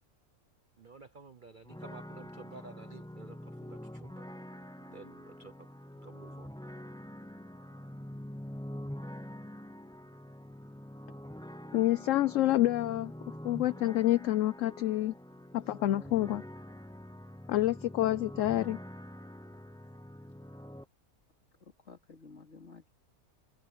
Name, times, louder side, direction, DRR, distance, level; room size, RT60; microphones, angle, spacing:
voice 1, 0.8-4.3 4.9-5.7 6.0-6.5, right 4 dB, 40° right, 0.9 m, -52 dB
sound 1, 1.7-20.8, equal, 5° left, 0.5 m, -45 dB
voice 2, 11.7-13.1 13.4-15.1 15.5-16.4 17.5-18.8, left 14 dB, 65° left, 0.9 m, -28 dB
voice 3, 21.6-22.9, left 4 dB, 45° left, 3.2 m, -53 dB
omnidirectional pair, 1.6 m